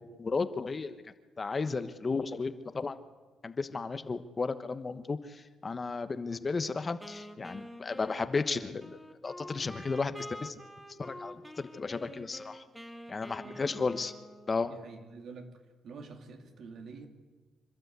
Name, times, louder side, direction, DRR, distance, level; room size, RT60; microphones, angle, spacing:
voice 1, 0.2-0.9 1.4-2.9 3.4-9.0 9.2-10.6 11.0-12.6 13.1-14.1 14.5-14.7, left 4 dB, 30° left, 11 dB, 1.2 m, -34 dB
Wind instrument woodwind instrument, 7.0-14.9, equal, ahead, 1.7 m, -47 dB
voice 2, 13.4-13.8 14.6-15.5 15.8-17.1, right 4 dB, 65° right, 5 dB, 2.7 m, -47 dB
26.0 x 12.5 x 8.3 m, 1.3 s
cardioid pair, 90°, 0 cm